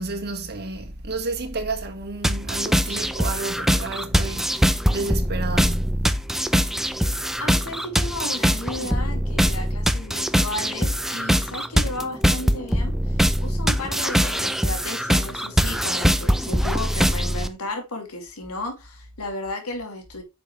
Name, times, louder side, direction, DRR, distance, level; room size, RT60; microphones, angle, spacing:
voice 1, 0.0-4.5 4.9-6.1, right 3 dB, 50° right, 1.8 m, -31 dB
sound 1, 2.2-17.5, equal, ahead, 0.6 m, -22 dB
voice 2, 7.4-20.2, left 2 dB, 85° left, 2.7 m, -34 dB
9.3 x 6.2 x 3.3 m
head